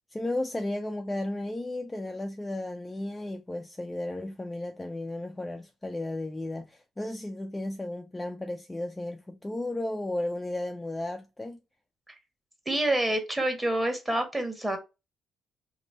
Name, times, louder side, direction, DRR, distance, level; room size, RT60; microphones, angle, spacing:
voice 1, 0.1-11.6, left 1 dB, 15° left, 0.4 m, -34 dB
voice 2, 12.7-14.8, right 1 dB, 15° right, 1.1 m, -27 dB
3.0 x 2.6 x 2.6 m
cardioid pair, 105°, 0 cm